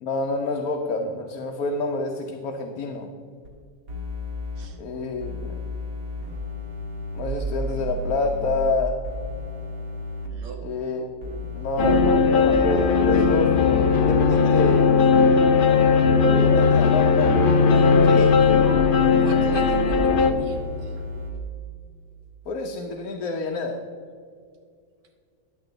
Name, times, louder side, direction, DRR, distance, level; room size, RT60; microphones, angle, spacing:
voice 1, 0.0-3.1 4.8-5.6 7.1-9.0 10.6-15.0 16.2-17.4 18.0-18.4 22.5-23.8, left 3 dB, 80° left, 2 dB, 1.2 m, -28 dB
sound 1, 3.4-3.5 3.9-4.7 5.2-8.7 9.0-10.3 11.2-21.3, left 1 dB, 80° right, 2.0 m, -31 dB
sound 2, 11.8-20.3, left 5 dB, 55° left, 0.6 m, -18 dB
voice 2, 18.5-18.9 19.2-20.9, right 2 dB, 60° right, 2 dB, 1.4 m, -37 dB
11.5 x 8.0 x 3.9 m, 2.2 s
omnidirectional pair, 1.5 m